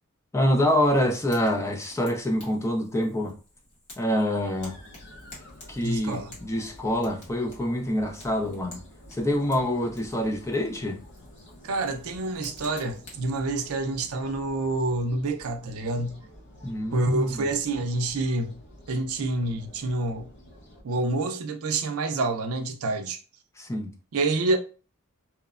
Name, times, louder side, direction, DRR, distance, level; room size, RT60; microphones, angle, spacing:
voice 1, 0.3-3.3 4.0-4.8 5.7-8.8 9.1-11.0 16.6-17.5 23.6-23.9, equal, 15° left, 0.4 m, -26 dB
Fire, 0.8-13.3, left 2 dB, 75° left, 1.5 m, -52 dB
sound 1, 4.6-20.8, left 1 dB, 55° left, 0.7 m, -50 dB
voice 2, 5.8-6.3 11.6-16.2 16.9-18.6 18.9-20.3 20.8-23.2 24.1-24.6, right 2 dB, 70° right, 0.4 m, -27 dB
3.0 x 2.0 x 2.3 m
head